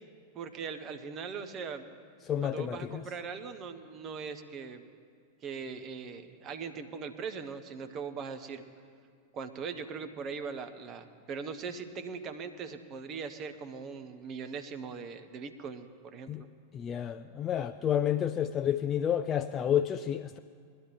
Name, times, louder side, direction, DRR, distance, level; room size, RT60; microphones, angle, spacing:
voice 1, 0.3-1.9 2.4-4.8 5.4-8.6 9.3-16.3, right 5 dB, 30° right, 8 dB, 0.9 m, -40 dB
voice 2, 2.3-3.1 16.3-16.4 16.7-20.4, left 9 dB, 25° left, 9 dB, 0.3 m, -30 dB
20.5 x 12.5 x 3.2 m, 2.2 s
figure-of-eight pair, 90°, 0 cm